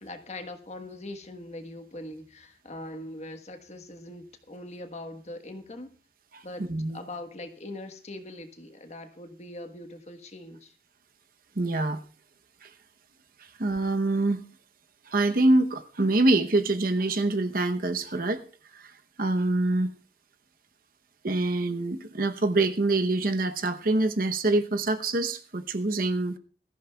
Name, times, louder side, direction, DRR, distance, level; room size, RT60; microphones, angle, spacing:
voice 1, 0.0-5.9 6.4-10.7, left 1 dB, 40° left, 1.3 m, -41 dB
voice 2, 11.6-12.0 12.6-12.7 13.6-14.4 15.1-18.4 18.7-18.9 19.2-19.9 21.2-26.4, right 2 dB, 50° right, 0.9 m, -25 dB
21.0 x 14.0 x 2.3 m
head